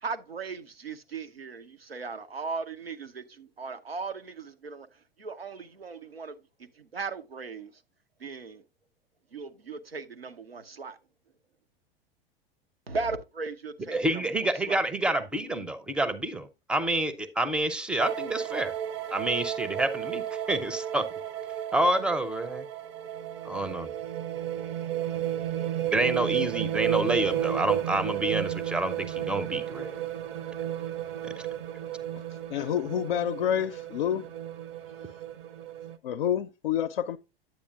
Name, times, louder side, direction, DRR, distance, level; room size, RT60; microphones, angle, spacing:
voice 1, 0.0-6.4 6.7-7.8 8.2-8.6 9.3-11.0 12.9-14.8, right 4 dB, 85° right, 0.8 m, -37 dB
voice 2, 13.9-18.7 19.1-20.2 20.5-21.1 21.7-22.7 23.4-23.9 25.9-30.0, right 1 dB, 5° right, 0.5 m, -28 dB
sound 1, 18.0-36.0, right 11 dB, 40° right, 0.7 m, -33 dB
voice 3, 32.5-34.3 36.0-37.2, left 9 dB, 60° left, 0.5 m, -28 dB
9.1 x 8.4 x 2.4 m
figure-of-eight pair, 90°, 29 cm